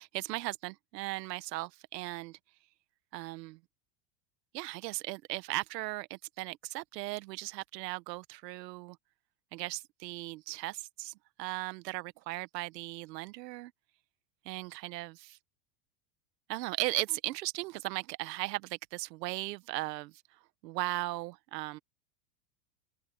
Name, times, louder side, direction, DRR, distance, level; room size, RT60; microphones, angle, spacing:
voice 1, 0.0-2.4 3.1-3.6 4.5-9.0 9.5-11.1 11.4-13.7 14.4-15.4 16.5-21.8, right 19 dB, 90° right, 1.1 m, -37 dB
supercardioid pair, 175°, 48 cm